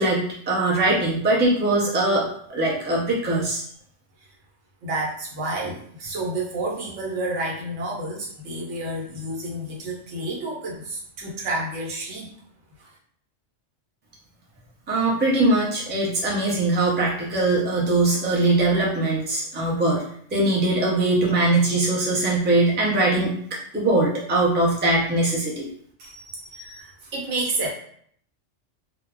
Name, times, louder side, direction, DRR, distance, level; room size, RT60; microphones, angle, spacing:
voice 1, 0.0-2.2 2.5-3.6 14.9-20.0 20.3-23.4 23.7-25.7, right 2 dB, 15° right, -5 dB, 0.4 m, -21 dB
voice 2, 4.8-12.3 26.0-27.7, right 2 dB, 75° right, -3 dB, 1.1 m, -30 dB
2.3 x 2.1 x 3.4 m, 0.62 s
omnidirectional pair, 1.3 m